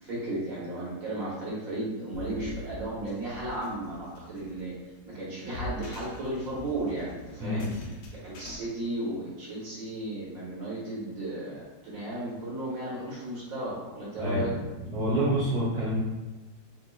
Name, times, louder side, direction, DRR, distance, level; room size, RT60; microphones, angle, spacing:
voice 1, 0.0-4.8 5.1-7.7 8.2-14.5, right 1 dB, 60° right, -6 dB, 1.2 m, -34 dB
sound 1, 2.1-8.6, left 1 dB, 90° left, 1.3 m, -43 dB
voice 2, 7.4-7.8 14.2-14.5 14.9-16.0, right 1 dB, 5° left, -8 dB, 1.0 m, -27 dB
5.0 x 2.5 x 2.2 m, 1.2 s
omnidirectional pair, 1.8 m